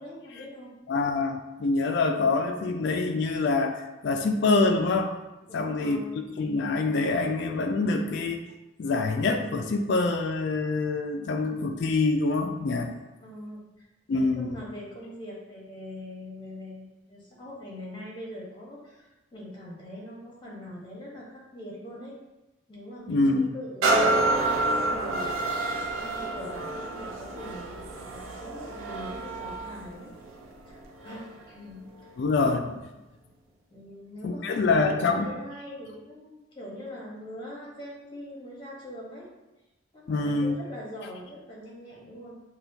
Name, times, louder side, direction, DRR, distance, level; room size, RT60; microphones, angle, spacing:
voice 1, 0.0-0.7 5.4-6.2 13.2-22.2 22.7-30.1 30.6-31.9 32.3-32.8 33.7-39.3 39.9-42.4, equal, 25° left, -4 dB, 1.0 m, -42 dB
voice 2, 0.9-5.1 5.5-8.5 8.8-12.9 14.1-14.6 23.1-23.5 32.2-32.7 34.2-35.3 40.1-40.6, left 3 dB, 55° left, 4 dB, 0.3 m, -25 dB
sound 1, 23.8-31.4 32.0-32.1, right 2 dB, 80° right, 0.6 m, -29 dB
6.0 x 2.3 x 2.7 m, 1.0 s
head